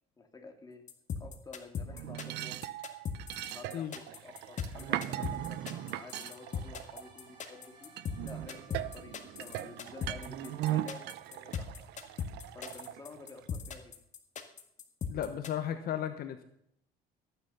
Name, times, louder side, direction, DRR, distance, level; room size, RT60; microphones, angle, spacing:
voice 1, 0.2-0.8 1.2-2.6 3.5-7.9 8.2-11.9 12.5-13.9, left 3 dB, 20° left, 3 dB, 2.4 m, -50 dB
sound 1, 0.9-15.5, left 6 dB, 45° left, 1.7 m, -38 dB
sound 2, 1.9-7.5 8.0-13.5, right 13 dB, 85° right, 0.7 m, -39 dB
sound 3, 3.2-12.9, right 3 dB, 30° right, 4.5 m, -60 dB
voice 2, 15.1-16.4, left 10 dB, 60° left, 8 dB, 1.1 m, -35 dB
14.5 x 9.5 x 5.5 m, 0.72 s
cardioid pair, 110°, 17 cm